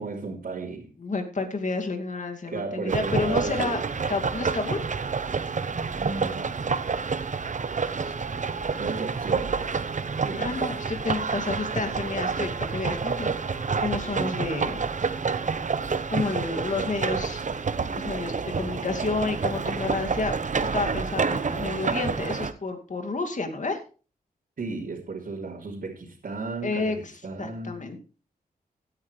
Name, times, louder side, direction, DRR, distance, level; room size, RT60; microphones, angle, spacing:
voice 1, 0.0-0.9 2.5-3.9 6.0-6.6 8.8-9.7 10.2-10.6 16.2-16.5 24.6-27.9, right 3 dB, 70° right, -5 dB, 3.4 m, -34 dB
voice 2, 1.0-3.8 4.1-4.8 8.0-8.4 10.4-14.9 16.1-17.6 17.9-23.8 26.6-27.1 27.4-28.0, left 3 dB, 55° left, 5 dB, 2.4 m, -30 dB
sound 1, 2.9-22.5, right 5 dB, 50° right, 0.9 m, -28 dB
Wind instrument woodwind instrument, 10.8-15.3, equal, 10° left, 7.0 m, -51 dB
16.0 x 9.5 x 3.3 m, 0.36 s
cardioid pair, 70°, 16 cm